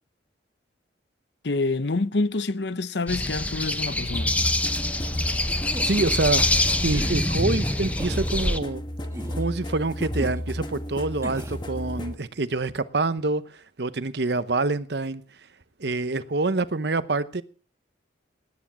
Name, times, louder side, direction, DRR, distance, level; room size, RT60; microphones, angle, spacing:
voice 1, 1.4-4.3, left 3 dB, 65° left, 0.8 m, -27 dB
sound 1, 3.1-8.6, left 1 dB, 10° left, 0.8 m, -25 dB
sound 2, 4.1-12.2, equal, 25° left, 1.3 m, -32 dB
sound 3, 5.7-6.1 6.8-7.2 8.0-8.3 9.1-9.5 10.2-10.4 11.2-11.6, right 1 dB, 15° right, 1.7 m, -37 dB
voice 2, 5.8-6.6 6.8-8.8 9.3-15.2 15.8-17.4, right 3 dB, 65° right, 0.9 m, -26 dB
19.0 x 9.8 x 6.1 m
head